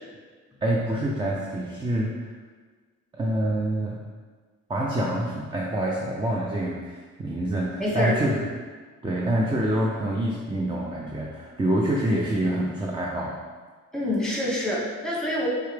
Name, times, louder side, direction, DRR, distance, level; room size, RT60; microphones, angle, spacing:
voice 1, 0.6-2.3 3.1-4.0 4.7-8.5 9.0-13.4, right 1 dB, 15° right, -3 dB, 0.5 m, -26 dB
voice 2, 7.8-8.2 13.9-15.5, left 1 dB, ahead, -5 dB, 1.2 m, -26 dB
4.7 x 2.8 x 3.3 m, 1.5 s
cardioid pair, 90°, 30 cm